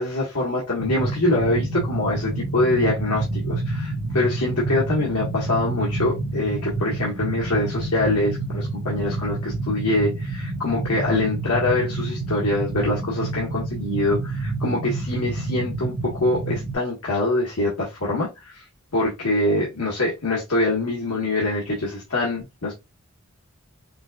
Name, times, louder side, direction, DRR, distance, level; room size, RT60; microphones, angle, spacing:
voice 1, 0.0-18.6 18.9-22.7, left 2 dB, 80° left, 1.5 m, -24 dB
sound 1, 0.8-16.7, right 2 dB, 35° right, 1.4 m, -28 dB
5.4 x 2.5 x 2.4 m
head